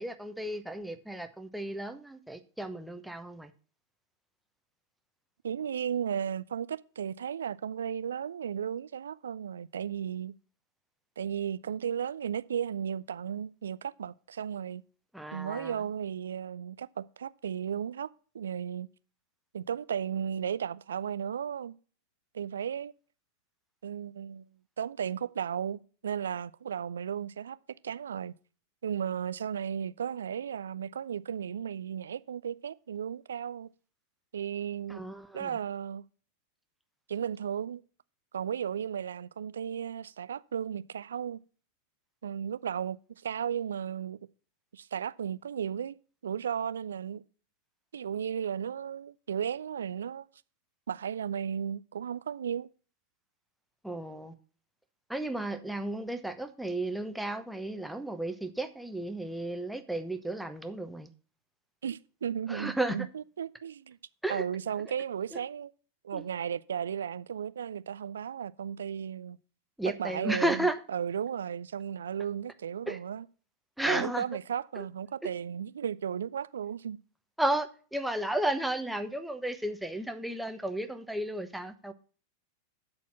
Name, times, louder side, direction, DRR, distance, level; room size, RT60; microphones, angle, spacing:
voice 1, 0.0-3.5 15.1-15.8 34.9-35.6 53.8-54.3 55.1-61.1 62.5-63.0 64.2-64.4 65.3-65.4 66.1-66.2 69.8-70.8 72.9-73.0 73.8-74.2 74.8-74.9 75.2-75.3 77.4-81.9, right 1 dB, ahead, 0.9 m, -33 dB
voice 2, 5.4-10.3 11.2-14.8 15.3-18.1 18.3-18.9 19.5-21.7 22.3-22.9 23.8-24.5 24.8-27.6 27.8-28.3 28.8-33.7 34.3-35.0 35.3-36.0 37.1-37.8 38.3-41.4 42.2-44.2 44.7-46.0 46.2-47.2 47.9-50.3 50.9-52.7 61.8-64.0 64.3-65.7 66.0-69.4 70.0-73.3 73.9-77.0, right 8 dB, 65° right, 0.4 m, -35 dB
12.0 x 4.4 x 6.0 m
figure-of-eight pair, 90°, 0 cm